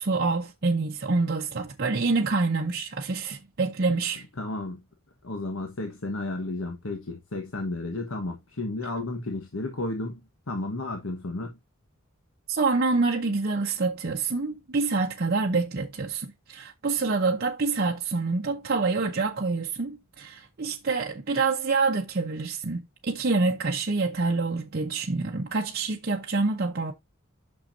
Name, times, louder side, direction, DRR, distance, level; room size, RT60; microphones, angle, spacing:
voice 1, 0.0-4.2 12.5-26.9, right 3 dB, 45° right, 0.7 m, -26 dB
voice 2, 4.4-4.8 5.2-11.6, left 2 dB, 75° left, 1.3 m, -33 dB
9.0 x 6.3 x 2.6 m
head